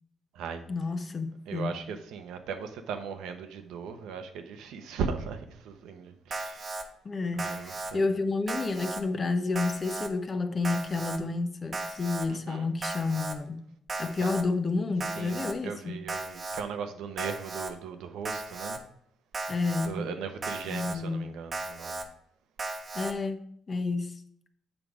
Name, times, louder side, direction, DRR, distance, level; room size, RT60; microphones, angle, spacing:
voice 1, 0.7-1.8 7.0-13.6 14.0-16.1 19.5-20.1 20.7-21.4 22.9-24.1, left 3 dB, 35° left, 0.8 m, -30 dB
voice 2, 1.5-6.8 7.4-8.1 12.3-12.7 15.2-18.8 19.8-22.0, right 6 dB, 90° right, 0.8 m, -38 dB
Alarm, 6.3-6.8 7.4-7.9 8.5-9.0 9.6-10.1 10.6-11.2 11.7-12.3 12.8-13.4 13.9-14.4 15.0-15.5 16.1-16.6 17.2-17.7 18.3-18.8 19.3-19.9 20.4-21.0 21.5-22.1 22.6-23.1, right 3 dB, 35° right, 1.0 m, -36 dB
7.4 x 4.9 x 4.9 m
cardioid pair, 90°, 0 cm